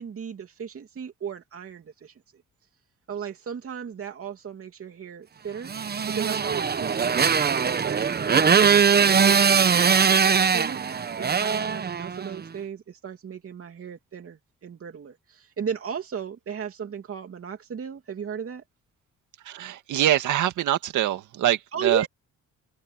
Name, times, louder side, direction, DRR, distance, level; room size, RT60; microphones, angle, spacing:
voice 1, 0.0-2.1 3.1-5.7 6.1-18.6 21.7-22.1, right 7 dB, 50° right, 2.8 m, -35 dB
Motorcycle, 5.7-12.4, right 6 dB, 30° right, 1.0 m, -21 dB
voice 2, 19.5-22.1, right 12 dB, 80° right, 2.1 m, -24 dB
open air
cardioid pair, 90°, 30 cm